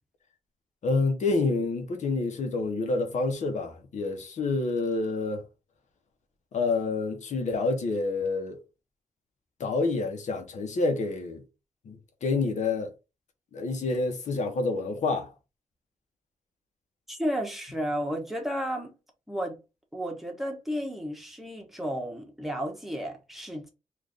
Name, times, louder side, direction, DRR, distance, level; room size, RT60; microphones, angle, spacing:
voice 1, 0.8-5.4 6.5-8.6 9.6-11.4 11.9-12.9 13.5-15.3, left 3 dB, 70° left, 0.9 m, -28 dB
voice 2, 17.1-18.9 19.3-19.6 19.9-23.7, equal, ahead, 1.0 m, -32 dB
3.2 x 2.5 x 3.9 m
wide cardioid pair, 110°, 13 cm